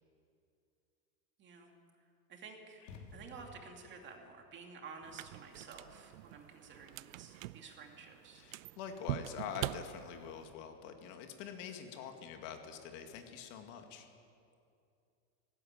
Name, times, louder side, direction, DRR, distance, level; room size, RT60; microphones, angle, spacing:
voice 1, 1.4-1.7 2.3-2.9 3.1-8.4, right 4 dB, 25° right, 3 dB, 2.4 m, -52 dB
sound 1, 2.8-3.8, left 2 dB, 85° left, 4.3 m, -52 dB
sound 2, 5.0-10.5, right 16 dB, 55° right, 0.5 m, -44 dB
voice 2, 8.3-14.1, left 7 dB, 40° left, 5 dB, 2.2 m, -45 dB
19.0 x 17.5 x 8.8 m, 2.5 s
supercardioid pair, 155°, 48 cm